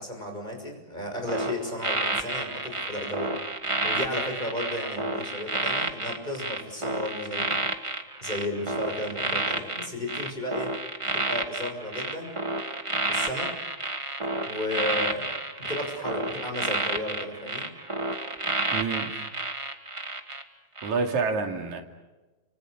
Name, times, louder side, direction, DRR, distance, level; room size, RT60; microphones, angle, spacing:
voice 1, 0.0-3.3 3.8-7.6 8.2-10.8 11.1-12.3 13.1-13.5 14.4-17.7, left 1 dB, 15° left, 3 dB, 6.6 m, -34 dB
sound 1, 1.3-20.4 20.8-21.0, right 2 dB, 15° right, 1.2 m, -30 dB
voice 2, 18.7-19.2 20.8-21.8, right 4 dB, 75° right, 4 dB, 4.1 m, -28 dB
29.5 x 26.5 x 6.6 m, 1.2 s
omnidirectional pair, 3.3 m